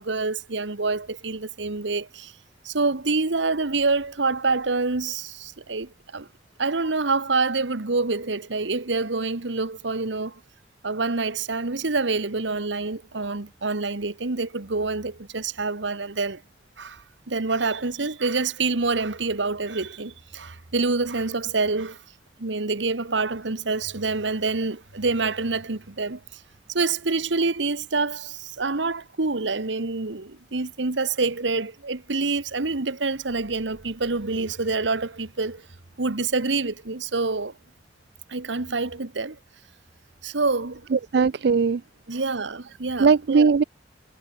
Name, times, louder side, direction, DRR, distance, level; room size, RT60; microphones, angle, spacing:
voice 1, 0.0-2.3 2.6-6.3 6.6-10.4 10.8-16.4 16.8-22.0 22.4-26.4 26.7-35.6 36.0-37.5 38.3-39.4 40.2-40.9 42.1-43.1, right 3 dB, 80° right, 1.4 m, -26 dB
voice 2, 40.9-41.8 43.0-43.6, right 5 dB, 60° right, 0.4 m, -19 dB
head